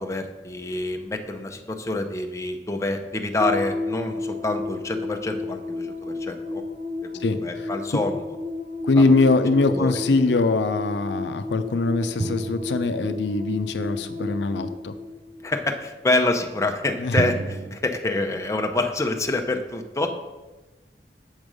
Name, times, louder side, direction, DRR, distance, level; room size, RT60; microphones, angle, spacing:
voice 1, 0.0-6.6 7.1-8.2 9.0-9.1 9.7-9.9 15.4-20.1, left 2 dB, 15° left, 4 dB, 0.6 m, -27 dB
sound 1, 3.4-15.9, left 3 dB, 65° right, 1.0 m, -32 dB
voice 2, 7.2-8.0 8.8-14.9 17.0-17.2, left 3 dB, 85° left, 9 dB, 0.6 m, -22 dB
sound 2, 12.2-13.8 17.1-17.8, right 3 dB, 40° right, 0.4 m, -30 dB
7.3 x 5.2 x 6.2 m, 1.2 s
head